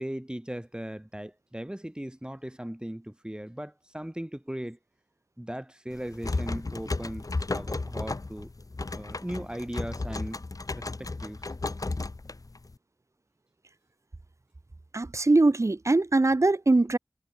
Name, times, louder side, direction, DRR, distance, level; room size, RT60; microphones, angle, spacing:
voice 1, 0.0-4.8 5.4-7.3 7.5-8.5 8.9-10.4 10.8-11.5, right 1 dB, 15° right, 3.3 m, -38 dB
sound 1, 5.9-12.8, left 3 dB, 70° left, 1.6 m, -34 dB
voice 2, 14.9-17.0, right 2 dB, 50° right, 1.1 m, -22 dB
wide cardioid pair, 55°, 6 cm